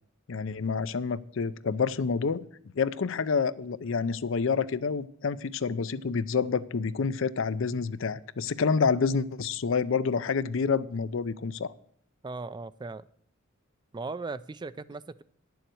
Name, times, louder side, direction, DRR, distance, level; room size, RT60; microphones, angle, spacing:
voice 1, 0.3-2.5 2.7-11.7, left 5 dB, 65° left, 15 dB, 0.5 m, -28 dB
voice 2, 12.2-13.1 13.9-15.2, right 3 dB, 20° right, 15 dB, 0.3 m, -38 dB
10.0 x 7.1 x 7.7 m, 0.64 s
head